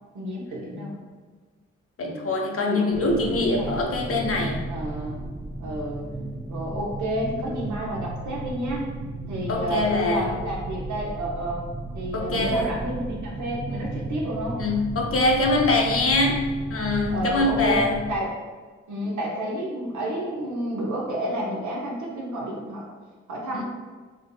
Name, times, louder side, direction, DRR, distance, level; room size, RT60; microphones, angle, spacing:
voice 1, 0.1-0.9 2.0-3.7 4.7-5.2 5.6-6.0 6.5-8.9 9.3-11.6 11.9-14.6 17.1-18.3 18.9-22.8 23.3-23.6, right 1 dB, 80° right, -3 dB, 1.0 m, -30 dB
voice 2, 2.0-4.7 9.5-10.3 12.1-12.7 14.6-18.1 23.5-23.6, left 2 dB, 50° left, 0 dB, 0.8 m, -24 dB
sound 1, 2.9-18.2, right 2 dB, 25° right, 0.5 m, -34 dB
4.8 x 2.7 x 2.2 m, 1.4 s
supercardioid pair, 45°, 29 cm